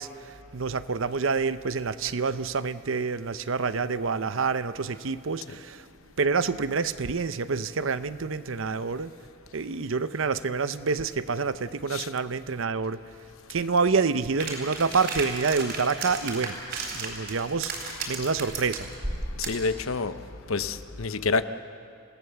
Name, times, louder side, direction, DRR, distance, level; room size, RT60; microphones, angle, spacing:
voice 1, 0.0-5.8 6.2-9.1 9.5-13.1 13.5-18.9, right 4 dB, 75° right, 0.7 m, -28 dB
sound 1, 14.4-19.7, right 3 dB, 55° right, 4.2 m, -34 dB
voice 2, 19.3-20.2 20.5-21.5, left 4 dB, 85° left, 0.8 m, -29 dB
28.0 x 17.5 x 7.0 m
head